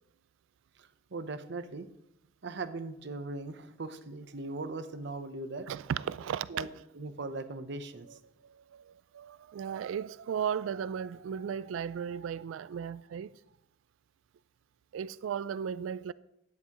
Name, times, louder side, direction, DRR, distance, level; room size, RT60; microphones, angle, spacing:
voice 1, 0.8-1.9 2.4-5.7 6.5-6.7 6.9-8.2, right 3 dB, 65° right, 0.8 m, -39 dB
voice 2, 5.7-6.6 8.4-13.4 14.9-16.1, right 8 dB, 85° right, 0.3 m, -36 dB
12.0 x 9.9 x 3.0 m
head